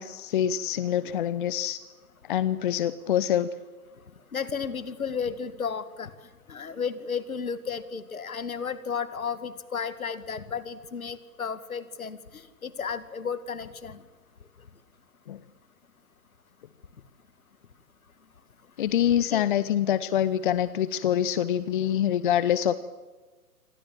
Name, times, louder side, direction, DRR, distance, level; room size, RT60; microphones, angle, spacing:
voice 1, 0.0-1.8 2.3-3.5 15.3-15.4 18.8-22.7, left 10 dB, 35° left, 16 dB, 0.8 m, -25 dB
voice 2, 4.3-6.1 6.5-14.0 19.0-19.5, left 6 dB, 65° left, 13 dB, 2.3 m, -33 dB
27.5 x 24.5 x 7.6 m, 1.3 s
figure-of-eight pair, 120°, 45 cm